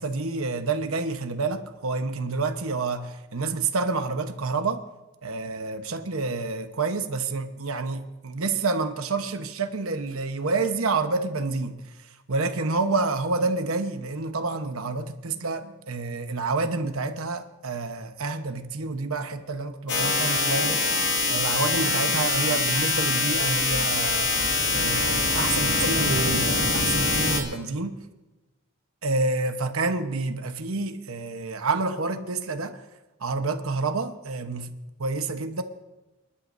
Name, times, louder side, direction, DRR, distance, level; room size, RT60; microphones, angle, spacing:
voice 1, 0.0-4.8 5.2-11.8 12.3-20.8 21.3-24.3 24.7-28.0 29.0-32.8 33.2-34.7 35.0-35.6, right 3 dB, 85° right, 1.1 m, -28 dB
sound 1, 19.9-27.4, left 3 dB, 55° left, 1.9 m, -24 dB
29.0 x 11.5 x 2.7 m
head